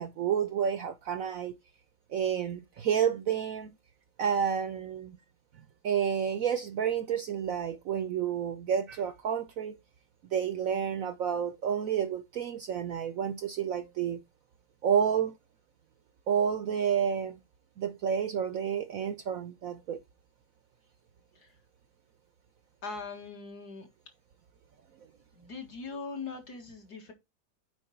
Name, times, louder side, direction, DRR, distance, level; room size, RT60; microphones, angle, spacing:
voice 1, 0.0-1.5 2.1-3.7 4.2-5.2 5.8-9.8 10.3-14.2 14.8-15.3 16.3-17.4 17.8-20.0, right 8 dB, 65° right, 0.9 m, -30 dB
voice 2, 22.8-23.9 25.3-27.1, left 4 dB, 60° left, 2.3 m, -41 dB
7.7 x 4.7 x 4.4 m
omnidirectional pair, 1.9 m